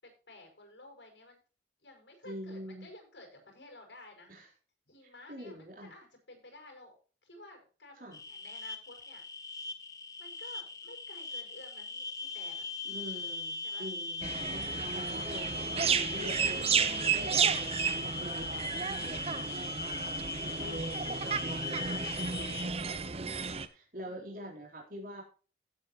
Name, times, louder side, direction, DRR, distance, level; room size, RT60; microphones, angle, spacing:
voice 1, 0.0-1.4 1.8-4.6 4.9-6.9 7.2-9.2 10.2-12.7 13.1-13.4 13.6-13.9 20.5-20.8 24.0-24.2, left 2 dB, 90° left, 3 dB, 5.6 m, -53 dB
voice 2, 2.3-2.9 4.3-4.5 5.0-5.9 8.0-8.2 12.8-14.6 14.9-16.7 17.1-25.2, equal, 50° right, 0 dB, 3.8 m, -46 dB
sound 1, 8.1-22.7, left 3 dB, 20° left, 1.1 m, -39 dB
sound 2, 14.2-23.7, right 6 dB, 35° right, 0.8 m, -32 dB
15.5 x 8.2 x 3.0 m, 0.37 s
head